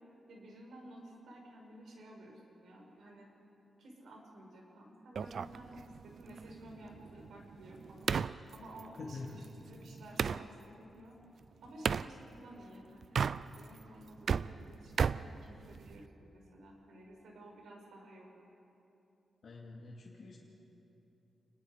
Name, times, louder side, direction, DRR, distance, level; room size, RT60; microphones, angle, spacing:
voice 1, 0.3-3.3 3.8-11.2 11.6-13.2 13.6-18.3, right 1 dB, 85° right, 0 dB, 5.7 m, -53 dB
sound 1, 5.2-10.5 11.8-12.1 13.0-13.8 14.1-16.1, right 6 dB, 55° right, 0.4 m, -36 dB
voice 2, 9.0-9.3 19.4-20.4, left 3 dB, 55° left, -4 dB, 2.3 m, -45 dB
29.5 x 21.0 x 5.1 m, 2.9 s
wide cardioid pair, 160°, 0 cm